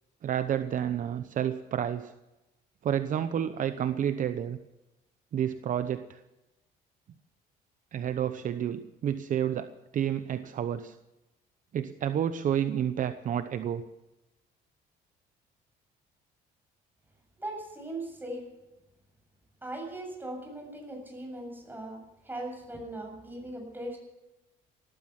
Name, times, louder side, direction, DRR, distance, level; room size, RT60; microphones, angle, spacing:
voice 1, 0.2-2.1 2.8-4.6 5.3-6.2 7.9-11.0 11.7-13.8, right 9 dB, 50° right, 10 dB, 0.9 m, -30 dB
voice 2, 17.4-18.5 19.6-24.0, right 1 dB, 10° right, 2 dB, 7.3 m, -39 dB
18.5 x 12.5 x 6.1 m, 0.96 s
cardioid pair, 110°, 17 cm